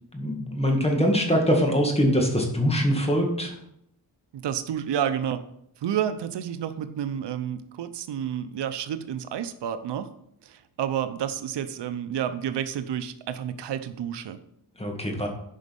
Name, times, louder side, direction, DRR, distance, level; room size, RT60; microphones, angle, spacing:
voice 1, 0.1-3.5 14.8-15.3, equal, 15° left, 2 dB, 1.9 m, -23 dB
voice 2, 4.3-5.4 5.8-10.1 10.4-14.4, right 9 dB, 90° right, 11 dB, 0.8 m, -30 dB
10.5 x 5.3 x 5.4 m, 0.74 s
wide cardioid pair, 125°, 40 cm